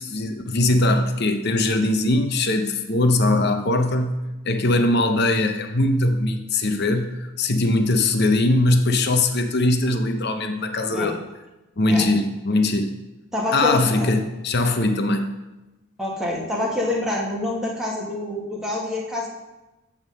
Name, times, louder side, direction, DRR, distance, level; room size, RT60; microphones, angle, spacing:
voice 1, 0.0-11.2 11.8-12.9 13.5-15.4, left 2 dB, 50° left, 6 dB, 0.7 m, -21 dB
voice 2, 13.3-14.1 16.0-19.3, left 1 dB, ahead, -4 dB, 1.2 m, -26 dB
8.8 x 3.6 x 6.5 m, 1.0 s
head